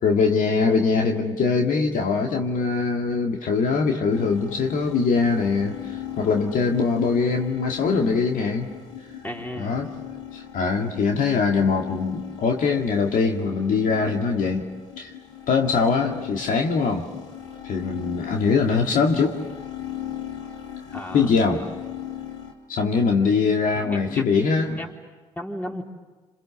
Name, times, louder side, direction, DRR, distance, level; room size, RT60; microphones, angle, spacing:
voice 1, 0.0-8.7 9.6-9.9 10.3-14.7 15.0-15.1 15.5-17.1 17.6-19.4 21.1-21.6 22.7-24.8, left 4 dB, 60° left, 2 dB, 2.2 m, -22 dB
sound 1, 4.1-22.5, left 10 dB, 80° left, 3.0 m, -38 dB
voice 2, 9.2-9.8 20.9-21.3 23.7-24.5 24.8-24.9 25.4-25.8, equal, 10° left, 0 dB, 4.3 m, -35 dB
28.0 x 27.5 x 7.1 m, 1.3 s
hypercardioid pair, 50°, 15 cm